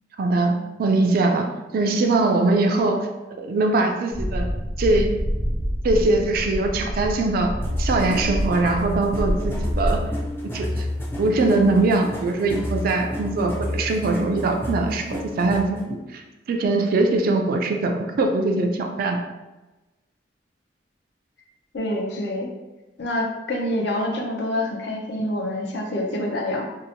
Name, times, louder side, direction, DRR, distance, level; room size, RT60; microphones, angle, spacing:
voice 1, 0.2-1.5 1.7-4.5 4.8-5.1 5.8-7.5 7.8-10.0 10.5-10.9 11.2-16.2 16.5-19.2, right 2 dB, 55° right, 4 dB, 0.3 m, -22 dB
sound 1, 4.1-10.0, equal, 80° right, 0.7 m, -27 dB
sound 2, 7.6-15.8, left 1 dB, 15° left, 0.5 m, -30 dB
voice 2, 21.7-22.5 23.0-26.6, left 1 dB, 65° left, 0 dB, 0.5 m, -26 dB
2.8 x 2.0 x 2.7 m, 1.1 s
head